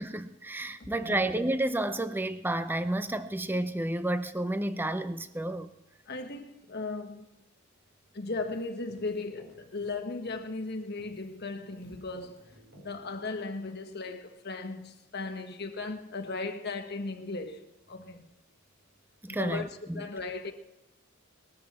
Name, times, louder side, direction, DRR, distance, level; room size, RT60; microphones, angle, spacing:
voice 1, 0.0-5.7 19.2-20.1, right 1 dB, 10° right, 0.7 m, -31 dB
voice 2, 0.8-1.2 6.1-7.3 8.1-12.5 12.8-18.3 19.3-19.7 19.9-20.5, left 3 dB, 50° left, 1.4 m, -37 dB
Keyboard (musical), 8.4-10.7 11.0-13.8, right 1 dB, 70° right, 4.9 m, -59 dB
20.0 x 13.5 x 4.3 m
head